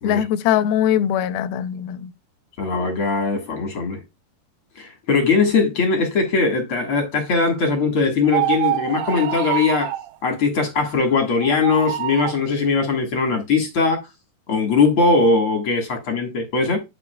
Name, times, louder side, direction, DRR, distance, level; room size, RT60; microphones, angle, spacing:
voice 1, 0.0-2.1, left 10 dB, 85° left, 2.5 m, -21 dB
voice 2, 2.6-4.0 4.8-9.9 10.2-14.0 14.5-16.8, left 4 dB, 50° left, 1.9 m, -20 dB
sound 1, 8.2-10.1 11.4-12.4, right 13 dB, 85° right, 1.8 m, -25 dB
12.0 x 4.9 x 2.3 m
omnidirectional pair, 4.3 m